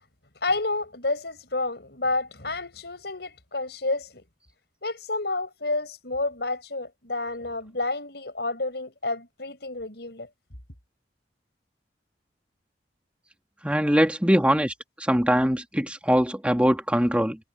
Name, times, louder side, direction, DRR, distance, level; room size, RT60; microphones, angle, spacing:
voice 1, 0.4-4.2 4.8-10.3, left 2 dB, 65° left, 6.4 m, -30 dB
voice 2, 13.6-14.7 15.1-17.4, equal, 5° right, 2.1 m, -22 dB
head